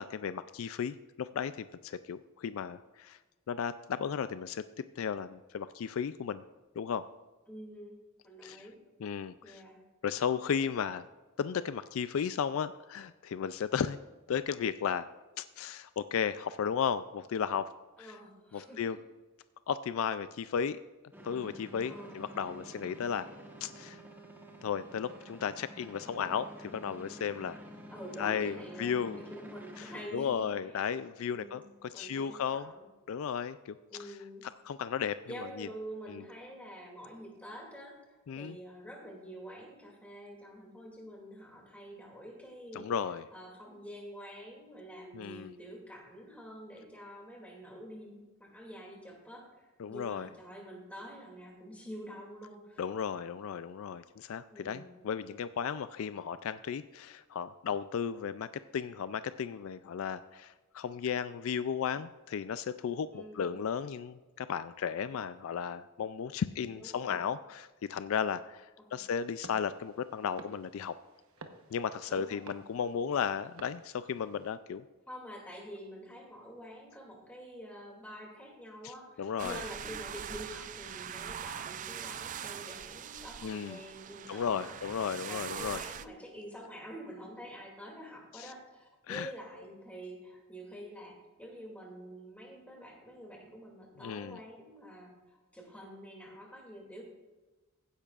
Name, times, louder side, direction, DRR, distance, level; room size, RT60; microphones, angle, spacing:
voice 1, 0.0-3.2 3.5-4.6 5.0-6.4 6.8-7.0 8.4-8.6 9.0-9.6 10.0-11.0 11.4-14.0 14.3-15.1 15.4-17.7 18.0-18.1 18.5-19.0 19.7-20.8 21.2-23.3 23.6-24.0 24.6-27.6 28.2-29.2 29.8-32.7 33.1-33.8 34.4-35.7 36.1-36.2 38.3-38.6 42.7-43.2 45.1-45.5 49.8-50.3 52.8-70.9 71.7-74.8 78.8-78.9 79.2-79.6 83.4-83.8 84.3-85.8 88.3-88.5 89.1-89.3 94.0-94.4, left 7 dB, 65° left, 13 dB, 0.3 m, -34 dB
voice 2, 7.5-8.0 8.2-8.8 9.4-9.8 18.0-18.9 21.9-22.2 27.9-30.8 31.3-31.6 31.9-32.8 33.9-34.4 35.2-42.9 43.3-52.8 54.5-54.9 63.1-63.6 66.3-66.4 66.7-67.3 68.9-69.0 72.1-72.6 75.1-84.8 85.3-97.0, equal, 5° left, -1 dB, 2.5 m, -47 dB
sound 1, 21.1-30.1, equal, 10° right, 1.2 m, -49 dB
sound 2, 69.4-74.6, right 3 dB, 70° right, 1.1 m, -54 dB
sound 3, 79.4-86.1, right 9 dB, 35° right, 0.3 m, -42 dB
16.0 x 9.9 x 2.5 m, 1.2 s
head